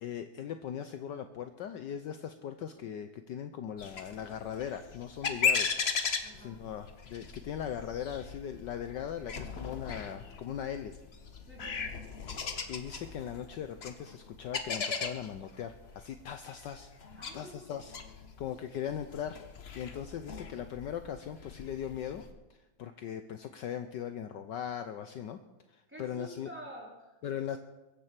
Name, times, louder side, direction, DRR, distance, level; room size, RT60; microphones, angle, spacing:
voice 1, 0.0-5.7 6.4-10.9 12.4-16.9 17.3-18.0 18.4-19.4 19.7-22.2 22.8-25.4 25.7-26.5 27.2-27.6, left 9 dB, 70° left, 9 dB, 1.3 m, -39 dB
sound 1, 3.8-22.3, left 5 dB, 40° left, 1.0 m, -38 dB
voice 2, 6.2-6.5 11.4-12.0 17.2-17.7 25.9-27.2, equal, 5° right, -4 dB, 4.4 m, -48 dB
22.5 x 7.7 x 7.4 m, 1.1 s
omnidirectional pair, 2.2 m